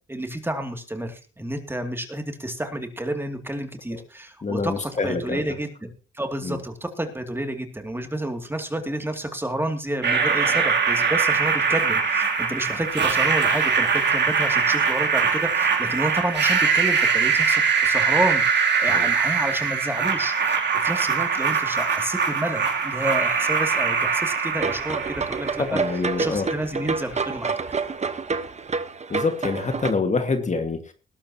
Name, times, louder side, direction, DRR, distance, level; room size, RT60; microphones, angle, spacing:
voice 1, 0.1-25.8 26.2-27.6, right 1 dB, 10° right, 5 dB, 2.6 m, -30 dB
voice 2, 4.4-5.4 6.4-6.6 18.9-19.0 25.6-26.5 29.1-30.9, left 4 dB, 35° left, 6 dB, 1.8 m, -26 dB
sound 1, 10.0-26.0, right 5 dB, 55° right, 3.1 m, -22 dB
sound 2, 24.6-29.9, right 4 dB, 35° right, 1.2 m, -28 dB
19.5 x 12.0 x 2.9 m, 0.35 s
cardioid pair, 85°, 21 cm